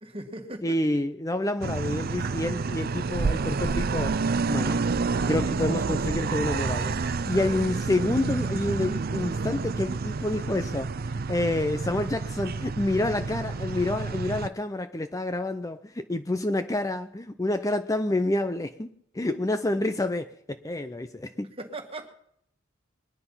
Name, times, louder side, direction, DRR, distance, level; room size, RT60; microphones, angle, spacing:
voice 1, 0.0-0.7 7.2-7.8 21.6-22.1, right 1 dB, 30° right, 5 dB, 2.0 m, -39 dB
voice 2, 0.6-4.2 4.5-4.8 5.3-10.9 11.3-18.9 19.1-21.5, left 2 dB, 15° left, 9 dB, 0.6 m, -28 dB
sound 1, 1.6-14.5, right 4 dB, 45° right, 0.5 m, -29 dB
22.0 x 10.0 x 5.7 m, 0.71 s
head